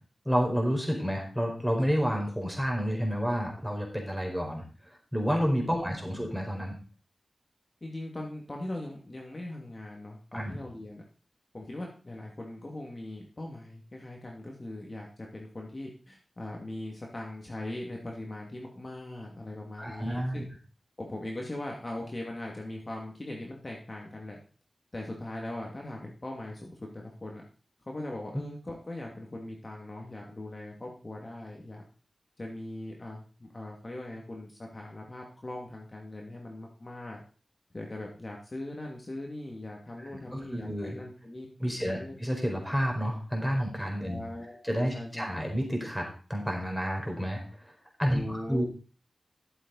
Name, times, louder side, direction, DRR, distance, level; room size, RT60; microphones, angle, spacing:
voice 1, 0.2-4.6 5.1-6.8 10.3-10.6 19.8-20.4 40.0-41.0 41.6-44.2 44.6-47.4 48.0-48.6, equal, ahead, 1 dB, 4.6 m, -30 dB
voice 2, 7.8-11.0 11.5-20.5 21.0-24.4 24.9-27.4 27.9-31.8 32.4-37.2 37.7-41.5 41.8-42.1 44.0-44.7 44.9-45.6 48.1-48.6, left 1 dB, 35° left, -1 dB, 2.5 m, -40 dB
12.5 x 7.7 x 4.2 m, 0.37 s
cardioid pair, 60°, 0 cm